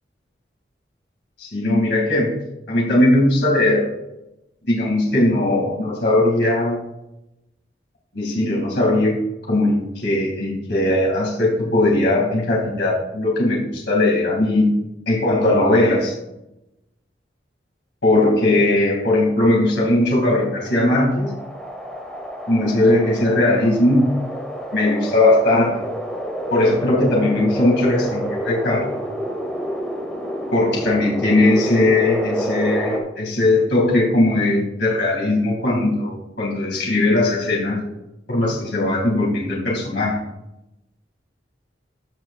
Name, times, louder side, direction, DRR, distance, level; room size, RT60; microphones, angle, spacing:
voice 1, 1.4-2.4 2.7-3.9 4.7-6.8 8.1-9.2 9.5-14.7 15.1-16.2 18.0-21.3 22.5-24.1 24.7-25.8 26.5-28.9 30.5-37.8 38.3-40.2, left 1 dB, 65° left, -3 dB, 2.3 m, -19 dB
sound 1, 19.8-33.0, equal, 5° left, 1.5 m, -29 dB
14.5 x 5.7 x 2.4 m, 0.90 s
head